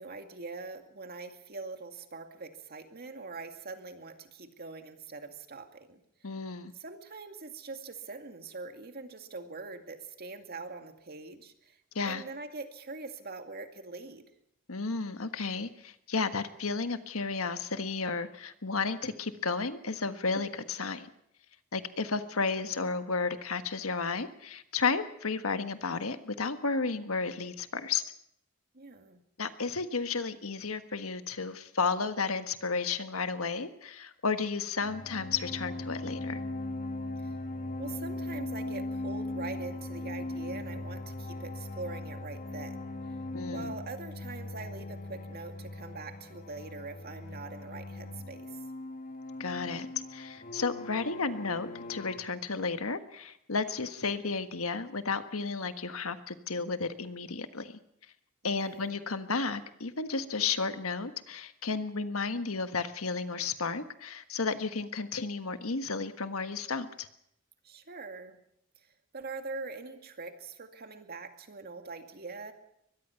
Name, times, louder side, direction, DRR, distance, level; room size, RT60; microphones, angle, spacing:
voice 1, 0.0-6.0 6.7-11.8 12.0-14.2 28.7-29.2 37.2-37.4 37.8-42.8 43.1-43.2 43.5-48.6 58.4-59.0 67.6-68.4 68.8-68.9 69.1-72.5, right 3 dB, 50° right, 6 dB, 2.2 m, -43 dB
voice 2, 6.2-6.7 11.9-12.2 14.7-21.1 21.7-28.0 29.4-36.4 43.3-43.7 49.4-57.8 58.4-67.1, left 4 dB, 90° left, 10 dB, 1.5 m, -33 dB
sound 1, 34.8-52.2, left 2 dB, 40° left, 1.7 m, -39 dB
23.0 x 21.0 x 5.8 m, 0.73 s
head